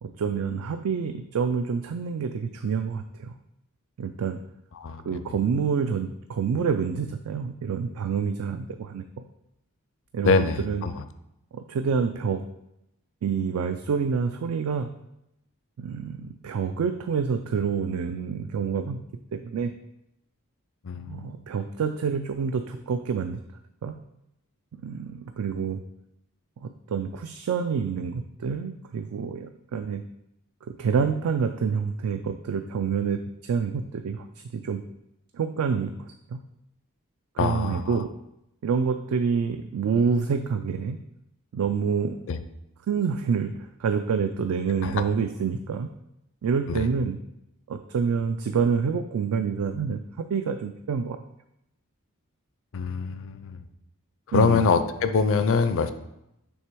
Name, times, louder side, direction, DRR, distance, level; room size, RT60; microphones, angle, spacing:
voice 1, 0.0-3.3 4.0-4.4 5.0-9.3 10.1-10.8 11.5-12.4 13.2-14.9 15.8-19.0 19.3-19.7 21.1-23.4 23.8-24.0 24.7-25.8 26.6-30.0 30.6-34.8 35.3-36.4 37.4-38.1 38.6-41.0 41.5-42.3 42.9-45.9 46.4-47.2 47.7-50.0 50.3-51.2 54.3-54.6, right 6 dB, 70° right, 8 dB, 0.3 m, -27 dB
voice 2, 4.8-5.2 10.2-11.0 20.8-21.3 37.4-38.0 42.3-42.4 44.8-45.0 46.7-46.9 52.7-53.6 54.3-55.9, left 5 dB, 60° left, 10 dB, 0.4 m, -24 dB
6.3 x 3.3 x 4.5 m, 0.85 s
head